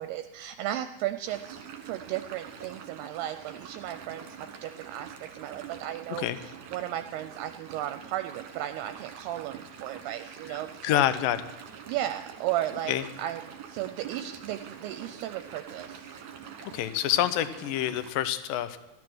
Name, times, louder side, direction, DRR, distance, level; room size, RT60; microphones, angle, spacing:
voice 1, 0.0-1.6 1.8-6.3 6.7-11.0 11.9-12.9 13.2-13.4 13.7-16.1, right 13 dB, 80° right, 8 dB, 2.5 m, -35 dB
sound 1, 1.2-18.1, right 7 dB, 60° right, 2.5 m, -45 dB
voice 2, 10.5-11.5 12.9-13.1 16.7-18.8, left 12 dB, 80° left, 12 dB, 2.0 m, -27 dB
15.5 x 12.5 x 6.2 m, 1.0 s
omnidirectional pair, 4.8 m